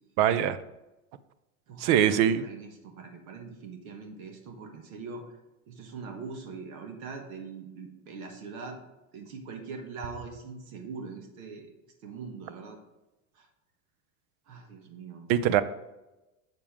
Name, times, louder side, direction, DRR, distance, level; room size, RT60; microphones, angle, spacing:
voice 1, 0.2-0.6 1.8-2.4 15.3-15.6, right 10 dB, 55° right, 14 dB, 0.7 m, -22 dB
voice 2, 1.7-5.2 5.7-8.8 9.1-11.7 12.0-12.8 13.3-13.5 14.5-15.3, right 4 dB, 75° right, 4 dB, 1.5 m, -42 dB
7.4 x 6.8 x 3.6 m, 1.0 s
hypercardioid pair, 110°, 43 cm